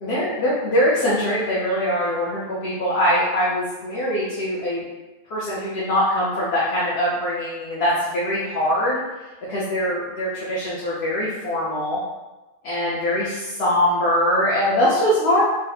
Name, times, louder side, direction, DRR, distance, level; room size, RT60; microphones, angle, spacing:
voice 1, 0.0-4.8 5.3-9.0 9.5-12.0 12.6-15.4, equal, 55° left, -8 dB, 0.9 m, -22 dB
3.7 x 2.1 x 2.7 m, 1.1 s
omnidirectional pair, 1.4 m